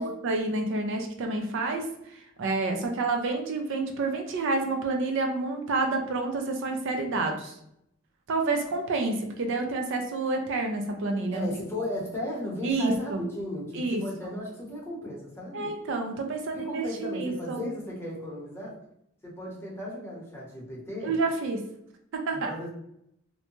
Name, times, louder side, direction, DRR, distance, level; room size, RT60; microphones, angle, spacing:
voice 1, 0.0-7.6 8.3-11.5 12.6-13.2 13.7-14.4 15.5-17.7 21.0-21.6 22.1-22.5, right 3 dB, 65° right, 4 dB, 0.4 m, -29 dB
voice 2, 11.3-15.8 16.5-18.8 19.2-21.2 22.3-22.7, left 1 dB, 10° left, -5 dB, 0.8 m, -36 dB
2.6 x 2.1 x 2.9 m, 0.77 s
head